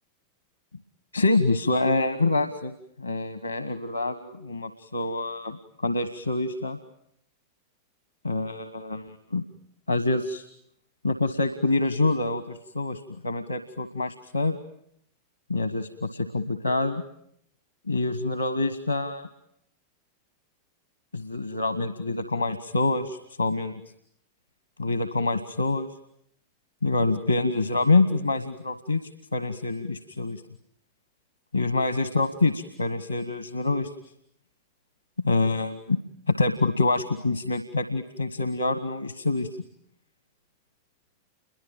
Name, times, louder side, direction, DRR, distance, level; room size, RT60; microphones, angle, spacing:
voice 1, 1.1-2.7 3.0-6.8 8.2-9.4 9.9-10.4 11.0-14.6 15.5-17.0 17.9-19.3 21.1-23.8 24.8-25.9 26.8-29.0 29.3-30.4 31.5-33.9 35.2-36.0 36.3-39.5, left 2 dB, 85° left, 11 dB, 1.4 m, -26 dB
29.0 x 23.0 x 8.9 m, 0.72 s
figure-of-eight pair, 90°, 0 cm